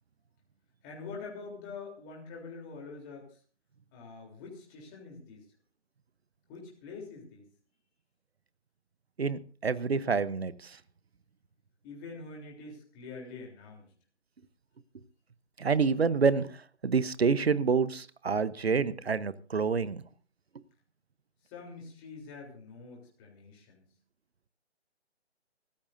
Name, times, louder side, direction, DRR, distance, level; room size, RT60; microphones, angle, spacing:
voice 1, 0.8-3.4 3.9-5.4 6.5-7.5 11.8-13.9 21.4-23.8, left 4 dB, 20° left, -1 dB, 3.4 m, -45 dB
voice 2, 9.2-10.8 15.6-20.0, right 5 dB, 65° right, 16 dB, 1.0 m, -28 dB
25.5 x 14.5 x 2.6 m, 0.40 s
figure-of-eight pair, 145°, 34 cm